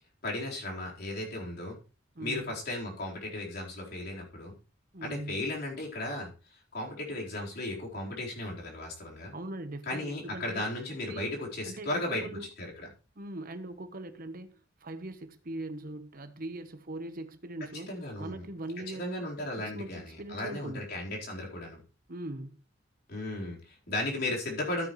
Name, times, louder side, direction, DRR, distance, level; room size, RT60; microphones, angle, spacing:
voice 1, 0.2-1.8 2.2-4.5 5.0-6.3 6.7-9.3 9.9-12.2 12.6-12.9 17.9-18.4 18.9-21.8 23.1-24.9, left 1 dB, 55° left, 4.2 m, -35 dB
voice 2, 2.1-2.6 4.9-5.4 9.3-11.3 11.7-12.5 13.2-19.3 19.6-20.9 22.1-22.6, right 1 dB, 45° right, 1.1 m, -41 dB
14.0 x 9.0 x 3.2 m
head